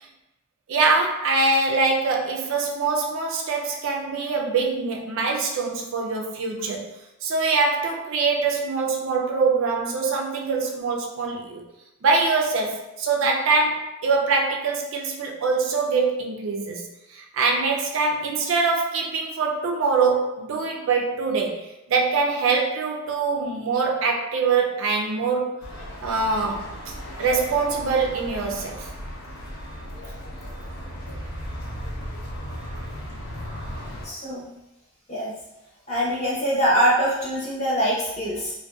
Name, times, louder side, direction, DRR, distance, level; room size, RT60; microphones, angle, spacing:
voice 1, 0.7-6.9 7.2-11.6 12.0-25.5 26.0-26.7 27.2-28.9, right 4 dB, 60° right, 0 dB, 0.4 m, -23 dB
sound 1, 25.6-34.1, equal, 75° left, 0.5 m, -36 dB
voice 2, 34.0-34.5 35.1-35.3 35.9-38.5, equal, 30° left, -6 dB, 0.7 m, -23 dB
2.6 x 2.1 x 2.3 m, 0.91 s
head